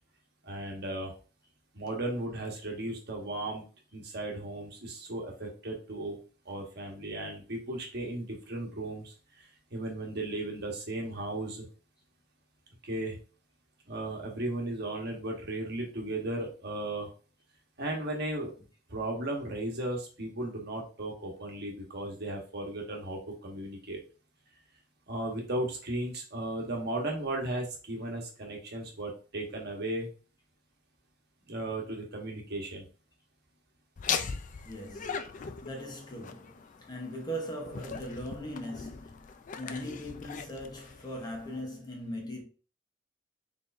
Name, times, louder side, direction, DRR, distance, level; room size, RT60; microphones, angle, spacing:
voice 1, 0.4-1.1 1.7-3.6 3.9-6.2 6.4-11.7 12.8-13.2 13.9-17.1 17.8-18.5 18.9-24.0 25.1-30.1 31.5-32.9, right 1 dB, 55° right, 1.1 m, -36 dB
Laughter, 34.0-41.6, left 6 dB, 40° left, 0.4 m, -39 dB
voice 2, 34.6-42.4, equal, 20° left, 0.9 m, -40 dB
4.3 x 3.5 x 2.5 m
head